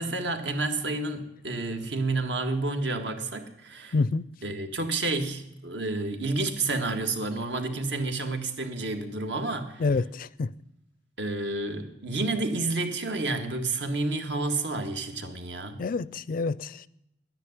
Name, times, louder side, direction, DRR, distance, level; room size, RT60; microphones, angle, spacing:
voice 1, 0.0-3.9 4.4-9.8 11.2-15.8, right 3 dB, 70° right, 1.8 m, -30 dB
voice 2, 3.9-4.2 9.8-10.5 15.8-16.9, left 3 dB, 50° left, 0.4 m, -27 dB
10.5 x 9.8 x 9.5 m
head